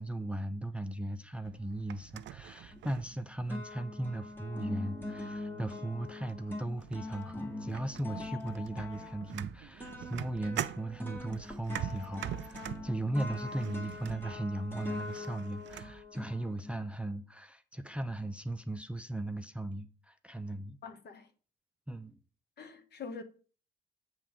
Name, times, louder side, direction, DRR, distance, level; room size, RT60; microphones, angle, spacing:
voice 1, 0.0-20.8 21.9-22.2, right 1 dB, 5° right, 0.5 m, -37 dB
sound 1, 1.4-3.7 4.2-4.6 5.7-5.8 6.3-6.5 6.8-16.0, right 11 dB, 65° right, 0.5 m, -44 dB
sound 2, 2.7-3.2 3.5-16.9, left 2 dB, 10° left, 1.5 m, -43 dB
voice 2, 20.8-21.3 22.6-23.2, left 5 dB, 55° left, 1.2 m, -44 dB
7.2 x 3.4 x 6.2 m
cardioid pair, 90°, 20 cm